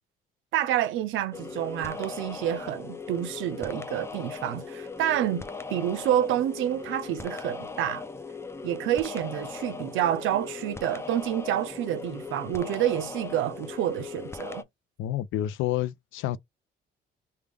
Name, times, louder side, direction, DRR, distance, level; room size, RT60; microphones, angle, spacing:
voice 1, 0.5-5.5 5.7-8.0 8.6-14.6, right 11 dB, 85° right, 0.5 m, -28 dB
skipping vewdew, 1.3-14.6, left 4 dB, 15° left, 0.4 m, -39 dB
voice 2, 15.0-16.4, left 13 dB, 90° left, 0.4 m, -29 dB
3.4 x 2.2 x 3.3 m
cardioid pair, 90°, 20 cm